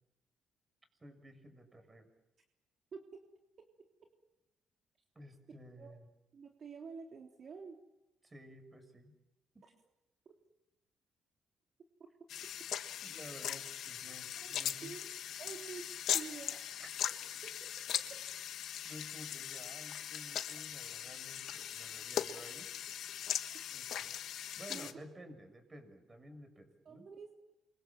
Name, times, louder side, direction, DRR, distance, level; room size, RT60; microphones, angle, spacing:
voice 1, 1.0-2.1 5.1-6.1 8.2-9.1 9.5-9.6 13.0-14.9 16.8-16.9 18.8-22.7 23.7-24.1 24.6-27.1, equal, 25° right, 8 dB, 6.7 m, -53 dB
voice 2, 2.9-3.2 3.6-3.7 5.8-6.0 6.3-7.8 9.6-9.7 10.3-10.4 14.1-14.5 14.8-15.1 15.4-16.7 17.0-17.1 17.4-18.2 24.7-25.0 26.9-27.5, right 5 dB, 55° right, 1 dB, 3.5 m, -49 dB
sound 1, 12.3-24.9, left 10 dB, 75° left, 1.6 m, -40 dB
29.5 x 25.5 x 7.6 m, 0.94 s
cardioid pair, 90°, 0 cm